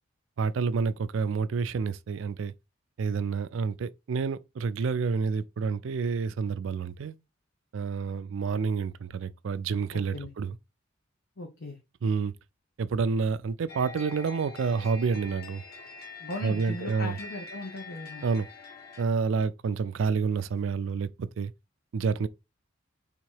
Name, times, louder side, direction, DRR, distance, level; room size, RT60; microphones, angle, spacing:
voice 1, 0.4-2.5 3.0-7.2 7.7-10.6 12.0-12.3 12.8-15.6 16.4-17.2 18.2-18.5 19.0-21.5 21.9-22.3, right 5 dB, 70° right, 0.4 m, -29 dB
voice 2, 9.9-10.3 11.4-11.8 16.2-18.2, left 2 dB, 70° left, 1.0 m, -38 dB
sound 1, 13.7-19.0, left 3 dB, 50° left, 1.4 m, -44 dB
3.6 x 2.9 x 4.6 m
head